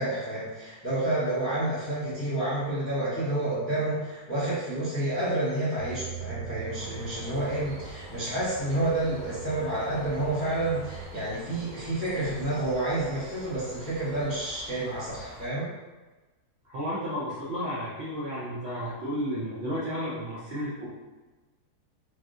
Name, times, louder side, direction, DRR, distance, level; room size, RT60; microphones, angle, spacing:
voice 1, 0.0-15.7, right 1 dB, 15° left, -9 dB, 0.4 m, -29 dB
sound 1, 5.8-11.0, right 8 dB, 35° left, 0.8 m, -42 dB
Bird, 6.7-15.5, equal, 80° right, 1.4 m, -47 dB
voice 2, 16.6-20.9, equal, 60° right, -8 dB, 0.7 m, -32 dB
3.4 x 2.3 x 2.5 m, 1.2 s
omnidirectional pair, 1.6 m